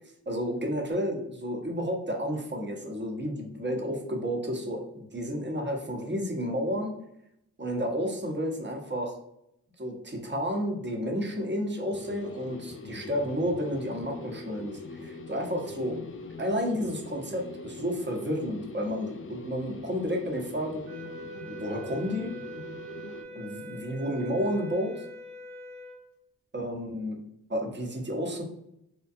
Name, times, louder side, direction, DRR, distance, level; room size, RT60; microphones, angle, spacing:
voice 1, 0.3-6.9 7.6-9.2 9.8-16.0 16.4-20.8 21.5-22.3 23.3-25.0 26.5-27.2 27.5-28.4, equal, 30° right, 1 dB, 0.8 m, -31 dB
sound 1, 11.9-23.2, left 2 dB, 35° left, 0.4 m, -42 dB
sound 2, 20.8-26.0, right 1 dB, 80° right, 1.2 m, -43 dB
2.4 x 2.2 x 2.6 m, 0.78 s
cardioid pair, 45°, 38 cm